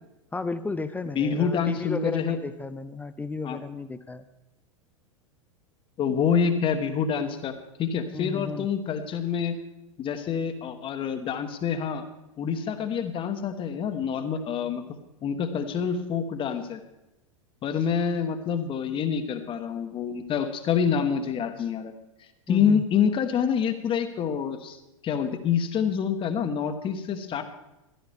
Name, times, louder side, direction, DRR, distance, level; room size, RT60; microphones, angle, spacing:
voice 1, 0.3-4.2 8.1-8.7 22.5-22.8, left 3 dB, 10° left, 12 dB, 0.7 m, -33 dB
voice 2, 1.2-2.4 3.4-3.6 6.0-7.5 7.8-9.6 10.0-12.0 12.4-14.8 15.2-16.8 17.6-21.9 22.5-27.4, left 7 dB, 30° left, 8 dB, 1.4 m, -27 dB
15.5 x 13.0 x 3.6 m, 0.95 s
figure-of-eight pair, 90°, 17 cm